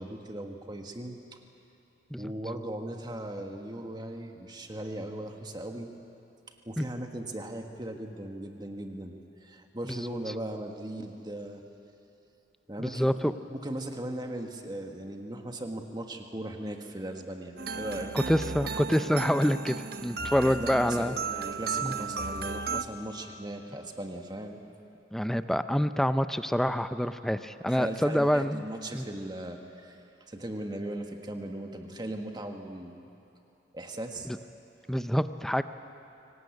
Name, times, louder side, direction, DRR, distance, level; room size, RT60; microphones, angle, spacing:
voice 1, 0.0-1.4 2.2-5.9 6.6-9.1 9.4-11.6 12.7-18.1 20.4-24.6 27.7-32.9 33.7-34.3, right 1 dB, 25° right, 4 dB, 1.5 m, -38 dB
voice 2, 12.8-13.3 18.1-21.2 21.8-21.9 25.1-28.6 28.9-29.0 34.3-34.4 34.9-35.6, equal, ahead, 11 dB, 0.5 m, -27 dB
sound 1, 17.6-22.8, right 4 dB, 55° right, 0.7 m, -34 dB
24.0 x 18.5 x 8.5 m, 2.8 s
head